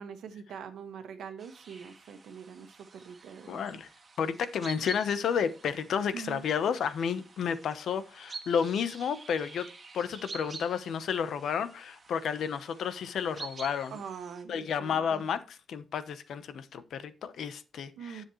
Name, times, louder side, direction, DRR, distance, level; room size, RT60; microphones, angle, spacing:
voice 1, 0.0-3.8 6.1-6.5 13.9-15.2 18.0-18.2, right 7 dB, 75° right, 1.5 m, -44 dB
sound 1, 1.4-14.4, right 4 dB, 25° right, 1.5 m, -48 dB
voice 2, 3.5-3.9 4.2-9.7 9.9-13.9 14.5-18.2, left 7 dB, 60° left, 0.9 m, -31 dB
10.0 x 7.3 x 3.1 m
wide cardioid pair, 170°, 0 cm